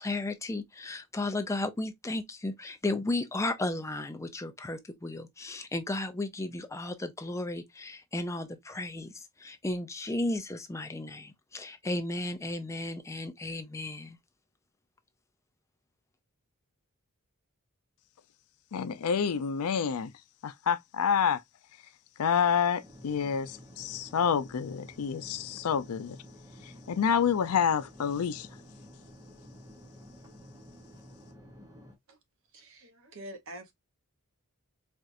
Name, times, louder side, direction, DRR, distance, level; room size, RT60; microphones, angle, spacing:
voice 1, 0.0-14.2, left 2 dB, 15° left, 0.4 m, -34 dB
voice 2, 18.7-20.1 20.4-21.4 22.2-26.2 26.6-28.5, left 7 dB, 80° left, 0.4 m, -28 dB
sound 1, 22.8-31.9, equal, 15° right, 0.8 m, -51 dB
voice 3, 32.5-33.7, right 1 dB, 60° right, 0.9 m, -46 dB
4.4 x 2.4 x 2.5 m
head